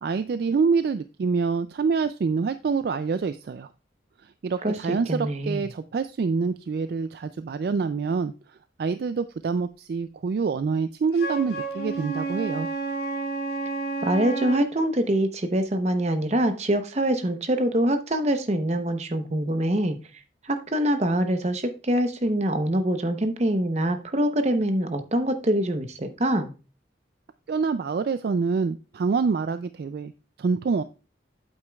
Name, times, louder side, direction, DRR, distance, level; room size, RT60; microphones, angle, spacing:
voice 1, 0.0-3.7 4.4-8.3 8.8-12.7 27.5-30.1 30.4-30.8, right 5 dB, 55° right, 11 dB, 0.3 m, -26 dB
voice 2, 4.6-5.7 14.0-20.0 20.4-26.5, right 1 dB, 35° right, 8 dB, 0.8 m, -24 dB
Wind instrument woodwind instrument, 11.1-14.7, right 3 dB, 75° left, 4.3 m, -30 dB
8.2 x 8.2 x 2.3 m, 0.32 s
head